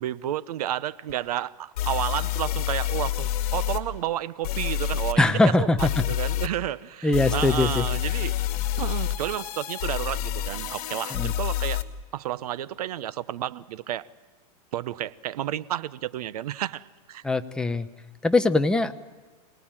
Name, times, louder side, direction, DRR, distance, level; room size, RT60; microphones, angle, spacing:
voice 1, 0.0-5.3 5.6-8.3 8.8-11.8 12.1-14.1 14.7-17.2, right 12 dB, 75° right, 1.0 m, -31 dB
sound 1, 1.1-1.2 1.8-3.8 4.4-5.1 5.8-6.5 7.1-11.8, left 12 dB, 70° left, 2.2 m, -28 dB
voice 2, 5.2-5.9 7.0-7.8 11.1-11.3 17.2-17.9 18.2-18.9, left 2 dB, 5° left, 0.8 m, -21 dB
27.5 x 19.0 x 8.9 m
supercardioid pair, 150°, 20 cm